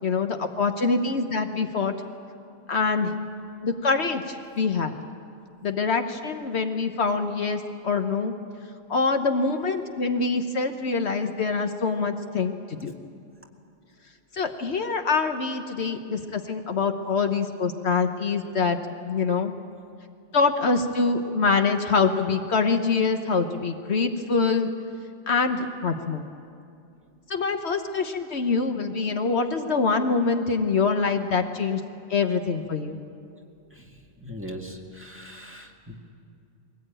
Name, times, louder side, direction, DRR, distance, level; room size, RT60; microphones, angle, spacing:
voice 1, 0.0-1.9 2.7-3.1 3.6-5.0 5.6-8.3 8.9-12.9 14.3-18.8 19.0-19.5 20.3-24.7 25.3-26.2 27.3-31.8 32.1-33.0, left 4 dB, 60° left, 6 dB, 1.3 m, -25 dB
voice 2, 34.2-36.0, equal, 10° right, 0 dB, 1.9 m, -40 dB
22.5 x 18.5 x 9.0 m, 2.4 s
omnidirectional pair, 1.3 m